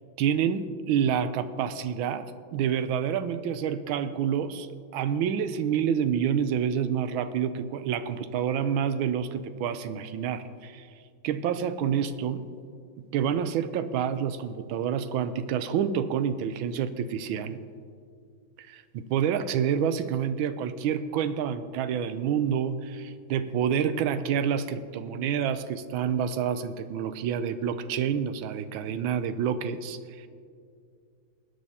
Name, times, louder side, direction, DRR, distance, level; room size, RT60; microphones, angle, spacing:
voice 1, 0.2-4.7 4.9-10.9 11.2-12.4 13.1-17.6 18.7-30.3, right 8 dB, 85° right, 11 dB, 1.4 m, -28 dB
20.0 x 9.7 x 2.8 m, 2.3 s
omnidirectional pair, 2.2 m